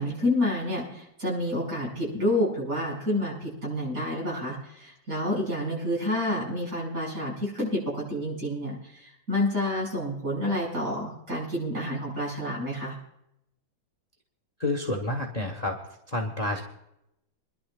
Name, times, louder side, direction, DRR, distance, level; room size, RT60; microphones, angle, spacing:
voice 1, 0.0-12.9, left 1 dB, 45° right, -4 dB, 6.6 m, -29 dB
voice 2, 14.6-15.8 16.1-16.6, left 2 dB, 25° left, 2 dB, 1.1 m, -29 dB
28.0 x 11.5 x 2.5 m, 0.82 s
omnidirectional pair, 2.1 m